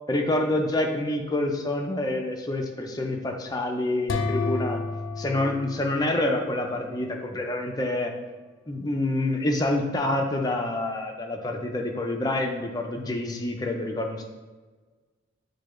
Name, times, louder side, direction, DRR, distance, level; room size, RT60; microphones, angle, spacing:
voice 1, 0.1-4.8 5.2-8.1 8.7-14.2, left 1 dB, 20° left, 2 dB, 0.4 m, -27 dB
sound 1, 4.1-6.9, left 4 dB, 85° left, 0.4 m, -31 dB
6.6 x 2.2 x 3.1 m, 1.3 s
head